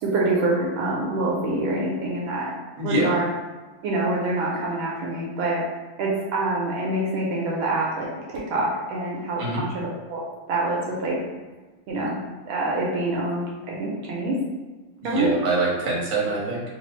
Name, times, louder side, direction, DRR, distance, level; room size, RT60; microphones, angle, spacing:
voice 1, 0.0-2.5 2.8-3.2 3.8-5.6 6.0-8.1 8.3-10.2 10.5-11.2 11.9-12.1 12.5-14.4 15.0-15.3, right 2 dB, 75° right, -3 dB, 1.4 m, -26 dB
voice 2, 15.0-16.6, right 2 dB, 45° right, -5 dB, 1.0 m, -24 dB
4.0 x 2.3 x 3.0 m, 1.2 s
omnidirectional pair, 2.4 m